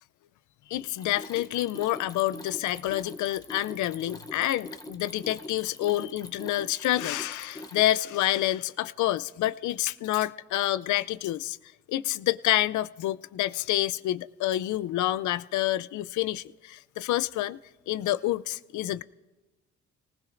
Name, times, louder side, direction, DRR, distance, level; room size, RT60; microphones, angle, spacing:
voice 1, 0.7-11.6 11.9-17.6 17.9-19.0, left 14 dB, 75° left, 16 dB, 0.5 m, -28 dB
Mechanisms, 0.8-8.2, left 2 dB, 10° left, 0.7 m, -43 dB
28.5 x 19.0 x 2.5 m, 1.2 s
cardioid pair, 90°, 30 cm